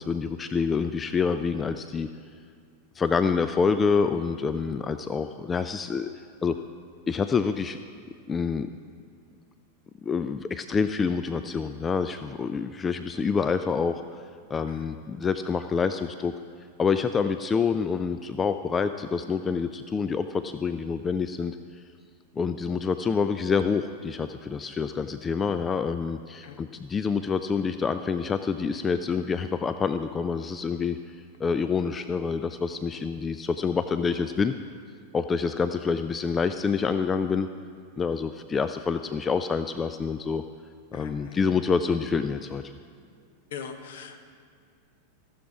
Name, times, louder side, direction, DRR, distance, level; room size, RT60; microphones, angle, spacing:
voice 1, 0.0-2.1 2.9-6.1 6.4-6.6 7.1-7.8 8.3-8.7 10.0-14.0 14.5-16.3 16.8-21.6 22.4-31.2 31.4-34.5 35.1-37.5 38.0-40.4 40.9-42.7, left 5 dB, 20° left, 10 dB, 0.3 m, -27 dB
voice 2, 40.9-41.4 43.5-44.2, left 7 dB, 55° left, 7 dB, 1.0 m, -40 dB
15.0 x 7.2 x 4.8 m, 2.2 s
figure-of-eight pair, 90°, 0 cm